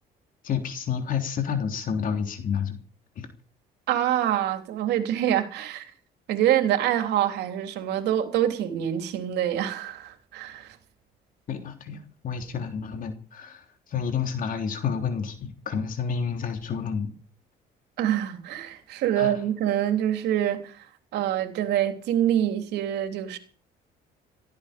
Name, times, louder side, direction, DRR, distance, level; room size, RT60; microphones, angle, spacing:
voice 1, 0.4-2.8 3.2-3.3 11.5-17.2 19.1-19.3, left 7 dB, 55° left, 3.3 m, -30 dB
voice 2, 3.9-5.9 6.3-10.8 18.0-20.8 21.1-23.4, right 11 dB, 80° right, 3.4 m, -25 dB
18.0 x 15.0 x 5.2 m
cardioid pair, 110°, 17 cm